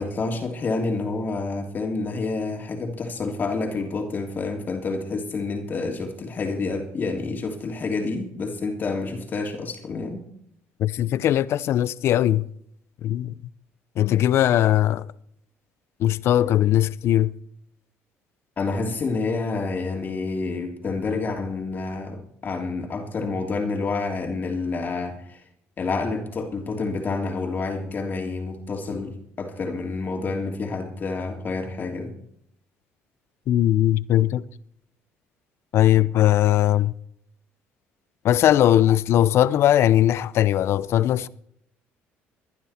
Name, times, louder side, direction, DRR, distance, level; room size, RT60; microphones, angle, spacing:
voice 1, 0.0-10.2 18.6-25.4 25.8-32.1, left 3 dB, 40° left, 3.0 m, -28 dB
voice 2, 10.8-12.4 13.0-13.4 14.0-15.1 16.0-17.3 33.5-34.4 35.7-36.9 38.2-41.3, left 12 dB, 60° left, 0.6 m, -19 dB
20.5 x 11.0 x 4.4 m
supercardioid pair, 90°, 5 cm